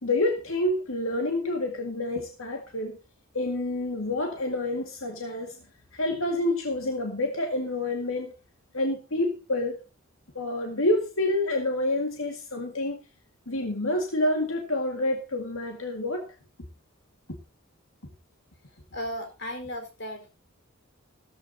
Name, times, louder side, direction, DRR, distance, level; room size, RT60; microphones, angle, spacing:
voice 1, 0.0-3.0 3.3-5.6 5.9-8.3 8.7-9.8 10.4-13.0 13.5-16.3 17.3-17.4, left 1 dB, 70° left, 3 dB, 2.0 m, -28 dB
voice 2, 18.9-20.3, equal, 55° left, 5 dB, 4.5 m, -35 dB
15.0 x 14.0 x 2.8 m, 0.28 s
head